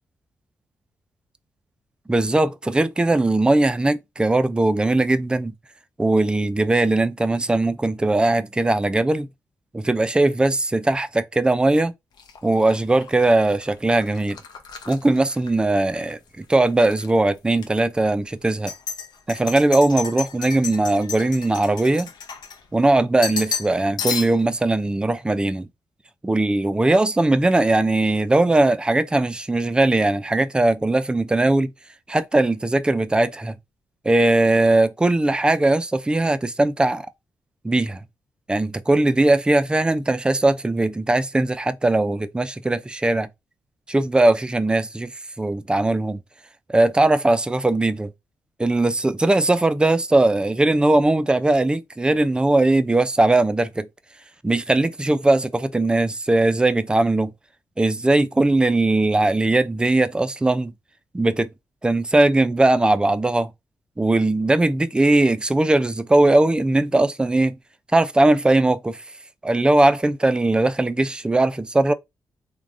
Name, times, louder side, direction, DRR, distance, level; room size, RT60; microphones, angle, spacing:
voice 1, 2.1-5.5 6.0-9.3 9.7-11.9 12.4-14.4 14.9-18.7 19.3-22.1 22.7-25.7 26.2-31.7 32.1-33.6 34.0-37.1 37.6-38.0 38.5-43.3 43.9-45.1 45.4-46.2 46.7-48.1 48.6-53.9 54.4-57.3 57.8-60.7 61.1-61.5 61.8-63.5 64.0-67.6 67.9-69.0 69.4-71.9, right 2 dB, 10° right, 0.3 m, -19 dB
sound 1, 12.2-16.1 16.4-17.1 17.6-17.7 18.4-22.9 23.2-23.7 24.0-24.6, left 6 dB, 70° left, 0.6 m, -33 dB
3.3 x 2.2 x 2.5 m
cardioid pair, 85°, 7 cm